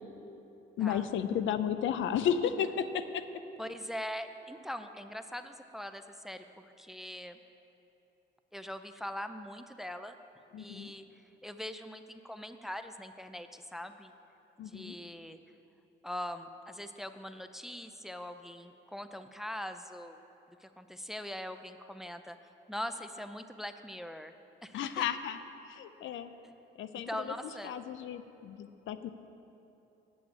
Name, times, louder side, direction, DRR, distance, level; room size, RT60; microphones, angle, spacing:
voice 1, 0.8-3.2 10.5-10.9 14.6-15.0 24.7-25.4 25.7-26.3 26.8-27.3 27.6-29.1, left 8 dB, 75° left, 11 dB, 0.5 m, -33 dB
voice 2, 3.6-7.4 8.5-10.2 10.6-14.1 14.6-15.4 16.0-20.2 20.6-22.4 22.7-24.3 24.6-25.1 26.4-26.5 26.9-27.8, equal, ahead, 9 dB, 0.5 m, -42 dB
8.6 x 6.9 x 8.4 m, 2.9 s
cardioid pair, 90°, 20 cm